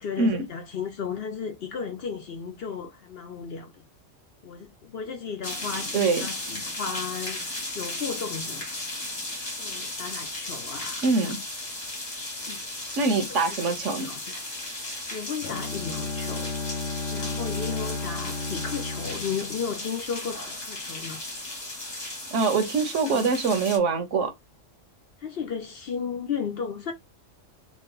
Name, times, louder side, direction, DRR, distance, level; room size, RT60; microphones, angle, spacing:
voice 1, 0.0-3.8 4.4-8.7 9.6-11.3 12.4-12.6 13.3-14.4 14.8-16.5 17.1-21.2 23.0-23.3 25.2-26.9, left 6 dB, 60° left, 0.8 m, -35 dB
sound 1, 5.4-23.8, left 1 dB, 35° left, 1.2 m, -35 dB
voice 2, 5.9-6.3 11.0-11.4 13.0-14.1 22.3-24.3, right 4 dB, 70° right, 1.1 m, -24 dB
Bowed string instrument, 15.4-20.4, left 3 dB, 85° left, 1.0 m, -33 dB
3.1 x 2.2 x 3.7 m
omnidirectional pair, 1.3 m